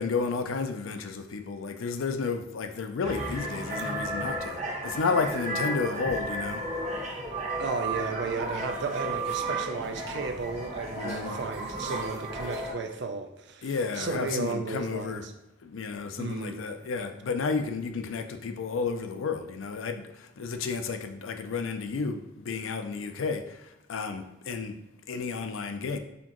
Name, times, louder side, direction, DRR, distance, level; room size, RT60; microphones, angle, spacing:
voice 1, 0.0-6.6 11.0-11.4 13.6-15.2 15.6-23.6 23.9-24.8 25.1-26.0, left 4 dB, 80° left, 0.4 m, -32 dB
sound 1, 3.0-12.7, right 2 dB, 35° right, 0.9 m, -33 dB
voice 2, 7.6-15.3 16.2-16.6, right 4 dB, 55° right, 0.4 m, -34 dB
4.2 x 3.7 x 3.0 m
head